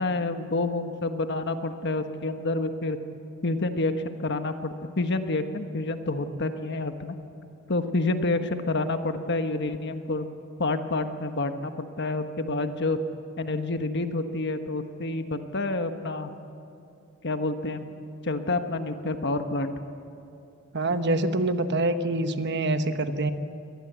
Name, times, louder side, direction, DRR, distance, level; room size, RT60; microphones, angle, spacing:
voice 1, 0.0-3.0 3.4-7.1 7.7-10.3 10.6-13.0 13.4-16.3 17.2-17.8 18.2-19.7, left 2 dB, 50° left, 7 dB, 1.3 m, -28 dB
voice 2, 20.7-23.3, right 2 dB, 50° right, 9 dB, 1.1 m, -25 dB
24.0 x 19.0 x 8.2 m, 2.7 s
head